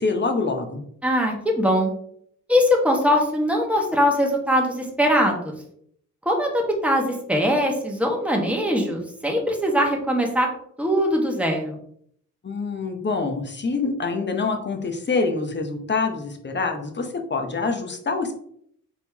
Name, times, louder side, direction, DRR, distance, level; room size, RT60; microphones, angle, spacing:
voice 1, 0.0-0.8 12.4-18.3, left 4 dB, 35° left, 5 dB, 0.9 m, -26 dB
voice 2, 1.0-1.9 2.5-5.5 6.2-10.5 10.8-11.8, equal, 5° right, 1 dB, 1.4 m, -21 dB
4.1 x 3.6 x 2.9 m, 0.65 s
cardioid pair, 65°, 33 cm